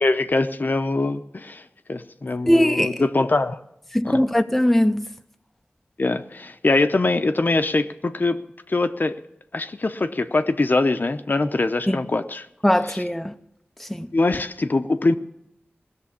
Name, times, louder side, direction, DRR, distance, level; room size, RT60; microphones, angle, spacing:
voice 1, 0.0-1.6 1.9-3.6 4.0-4.2 6.0-8.4 8.7-9.1 9.5-12.5 14.1-15.1, left 2 dB, 50° left, 0.7 m, -22 dB
voice 2, 2.5-2.9 3.9-5.1 11.9-12.0 12.6-13.3 13.8-14.1, equal, 5° left, 0.6 m, -20 dB
18.0 x 6.9 x 8.4 m
wide cardioid pair, 75°, 4 cm